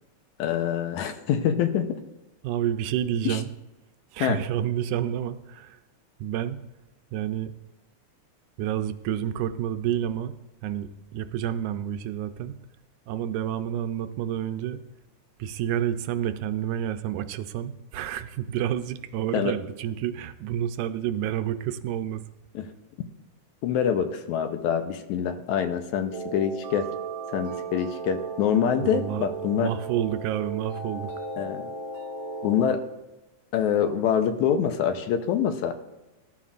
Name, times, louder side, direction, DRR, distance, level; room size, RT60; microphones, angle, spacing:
voice 1, 0.4-2.0 3.3-3.4 4.2-4.4 19.3-19.5 22.5-22.7 23.6-26.9 27.3-29.7 31.4-31.7 32.4-32.8 33.5-35.7, left 8 dB, 80° left, 8 dB, 2.1 m, -25 dB
voice 2, 2.4-3.5 4.1-5.8 6.2-6.6 7.1-7.5 8.6-12.6 13.1-14.8 15.4-22.2 28.8-29.2 29.6-31.1, right 10 dB, 85° right, 10 dB, 2.1 m, -29 dB
sound 1, 26.1-32.6, right 4 dB, 55° right, 3.8 m, -36 dB
19.0 x 11.5 x 2.5 m, 1.0 s
omnidirectional pair, 3.4 m